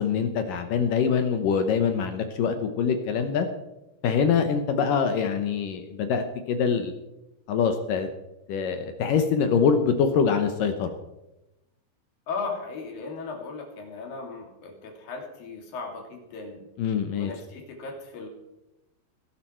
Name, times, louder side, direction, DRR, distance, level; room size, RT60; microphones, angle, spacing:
voice 1, 0.0-3.5 4.0-6.9 7.5-8.1 8.5-10.9 16.8-17.3, left 6 dB, 75° left, 7 dB, 2.1 m, -24 dB
voice 2, 12.3-16.6 17.2-18.3, left 4 dB, 55° left, 2 dB, 4.3 m, -36 dB
19.5 x 12.0 x 4.5 m, 0.96 s
omnidirectional pair, 5.1 m